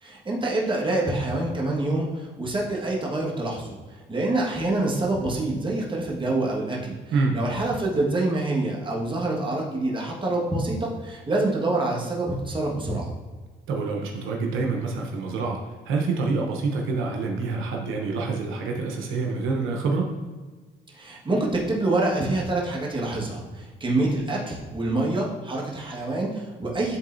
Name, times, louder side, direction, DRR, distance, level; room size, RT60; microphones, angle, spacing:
voice 1, 0.0-3.8 4.1-6.9 7.3-13.1 20.9-27.0, right 2 dB, 25° right, -3 dB, 1.5 m, -26 dB
voice 2, 13.7-15.6 15.9-20.1, right 4 dB, 85° right, 0 dB, 0.9 m, -26 dB
11.0 x 3.7 x 2.6 m, 1.3 s
cardioid pair, 90°, 20 cm